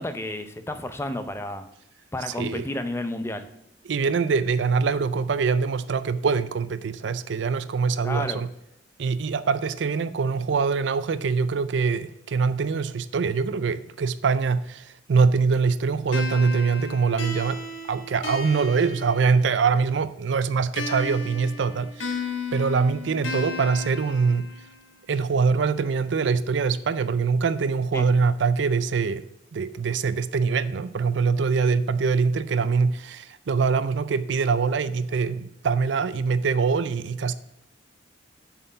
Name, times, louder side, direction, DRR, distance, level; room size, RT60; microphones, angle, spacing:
voice 1, 0.0-1.7 2.1-3.5 8.0-8.4 27.9-28.0, left 1 dB, 15° left, 0.5 m, -31 dB
voice 2, 2.3-2.7 3.9-8.5 9.0-17.6 17.9-22.1 22.5-24.4 25.1-29.2 29.5-37.3, right 5 dB, 65° right, 0.4 m, -24 dB
sound 1, 16.1-19.7 20.8-24.8, left 3 dB, 90° left, 1.3 m, -34 dB
7.0 x 4.5 x 6.6 m
head